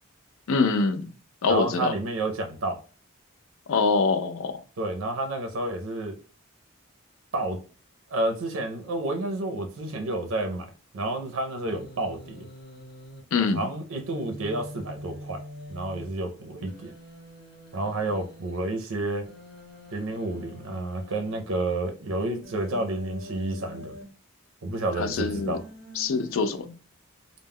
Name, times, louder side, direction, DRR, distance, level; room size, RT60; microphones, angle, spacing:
voice 1, 0.5-1.1 1.4-1.9 3.7-4.6 13.3-13.7 25.0-25.6 26.0-26.7, left 4 dB, 70° left, 0.4 m, -24 dB
voice 2, 1.5-2.8 4.8-6.2 7.3-7.6 8.1-12.5 13.5-15.4 15.7-16.9 17.7-19.3 19.9-24.0 24.6-25.6, right 2 dB, 70° right, 0.5 m, -30 dB
Human voice, 11.7-13.2 14.0-16.0 16.7-18.6 19.2-21.4 22.4-24.0 25.1-26.4, equal, 45° left, 1.1 m, -44 dB
2.2 x 2.0 x 3.4 m
head